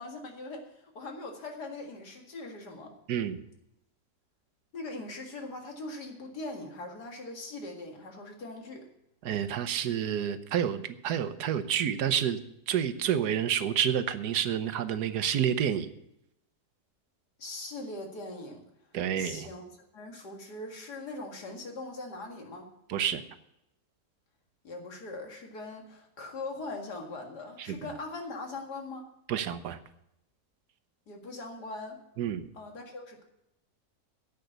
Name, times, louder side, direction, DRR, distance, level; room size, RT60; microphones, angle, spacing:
voice 1, 0.0-2.9 4.7-8.9 17.4-18.6 19.2-19.6 19.9-22.7 24.6-29.1 31.1-32.0 32.5-33.2, left 2 dB, 85° left, 2 dB, 2.5 m, -41 dB
voice 2, 3.1-3.4 9.2-12.4 12.7-15.9 18.9-19.5 22.9-23.2 27.6-27.8 29.3-29.8 32.2-32.5, right 9 dB, 85° right, 11 dB, 1.4 m, -29 dB
10.5 x 8.2 x 7.9 m, 0.82 s
omnidirectional pair, 1.7 m